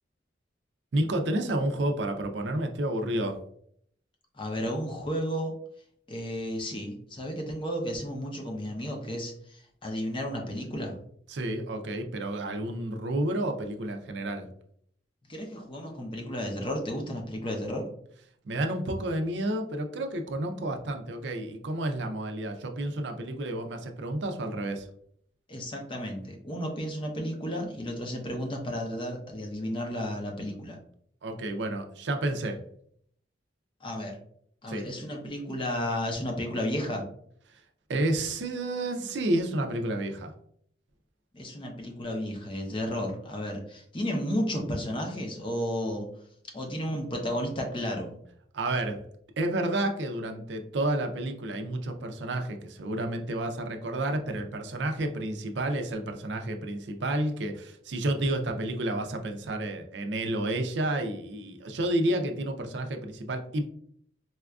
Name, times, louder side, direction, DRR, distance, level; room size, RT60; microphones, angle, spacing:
voice 1, 0.9-3.4 11.3-14.5 18.4-24.9 31.2-32.6 34.7-34.9 37.5-37.6 37.9-40.3 48.5-49.0 49.4-63.6, right 1 dB, 75° right, 5 dB, 0.5 m, -30 dB
voice 2, 4.3-5.5 6.1-11.0 15.3-17.9 25.5-30.8 33.8-34.2 34.6-37.0 41.3-46.1 46.5-48.1, equal, 30° left, 2 dB, 0.6 m, -33 dB
4.2 x 2.4 x 2.3 m, 0.64 s
head